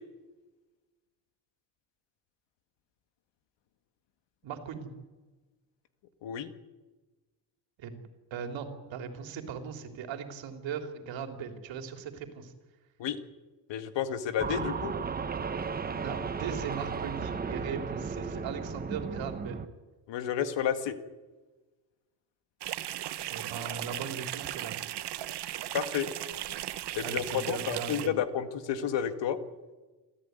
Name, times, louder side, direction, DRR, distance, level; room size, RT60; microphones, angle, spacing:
voice 1, 4.4-4.9 7.8-8.0 8.3-12.5 16.0-19.6 23.3-24.9 27.0-28.2, right 7 dB, 75° right, 5 dB, 3.5 m, -39 dB
voice 2, 6.2-6.5 13.0-13.2 13.7-14.9 20.1-21.0 25.7-26.1 27.0-29.4, left 8 dB, 70° left, 9 dB, 2.0 m, -31 dB
sound 1, 14.4-19.7, right 5 dB, 20° right, 0.9 m, -35 dB
sound 2, 22.6-28.1, right 13 dB, 60° right, 1.2 m, -37 dB
28.0 x 14.5 x 9.5 m, 1.2 s
cardioid pair, 165°, 45 cm